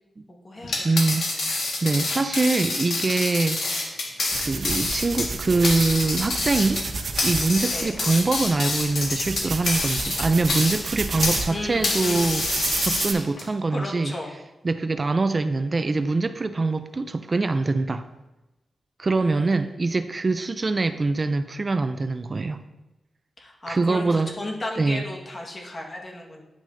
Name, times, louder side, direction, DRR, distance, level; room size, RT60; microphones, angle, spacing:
voice 1, 0.3-1.3 7.7-7.9 11.5-12.5 13.7-14.3 19.1-19.7 23.4-26.4, left 1 dB, 40° left, 0 dB, 1.4 m, -35 dB
sound 1, 0.6-11.5 11.8-13.4, left 2 dB, 80° left, 1.6 m, -27 dB
voice 2, 0.8-4.0 4.4-6.8 7.2-14.1 14.6-18.1 19.0-22.6 23.7-24.3 24.8-25.0, right 3 dB, 35° right, 10 dB, 0.3 m, -24 dB
sound 2, 4.3-13.1, right 4 dB, 60° right, 0.7 m, -32 dB
9.9 x 6.1 x 2.6 m, 1.0 s
wide cardioid pair, 90°, 0 cm